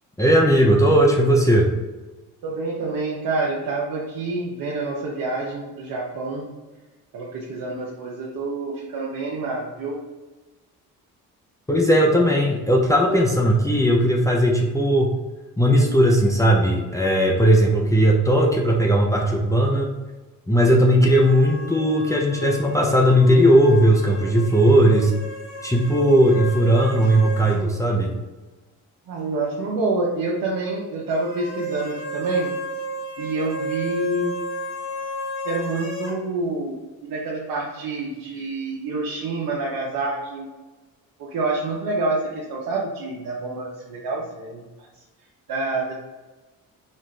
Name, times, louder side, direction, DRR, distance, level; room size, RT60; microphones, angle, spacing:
voice 1, 0.2-1.7 11.7-15.1 15.6-19.9 20.5-25.1 25.6-28.1, equal, 10° left, -1 dB, 0.6 m, -17 dB
voice 2, 2.4-6.5 7.1-10.0 29.1-32.5 33.2-34.4 35.4-40.5 41.2-44.9 45.5-45.9, right 2 dB, 70° right, -4 dB, 0.8 m, -27 dB
sound 1, 21.1-27.6 27.9-28.0 31.1-36.2, equal, 90° left, 1.1 m, -33 dB
4.3 x 2.5 x 3.2 m, 1.2 s
supercardioid pair, 70°, 36 cm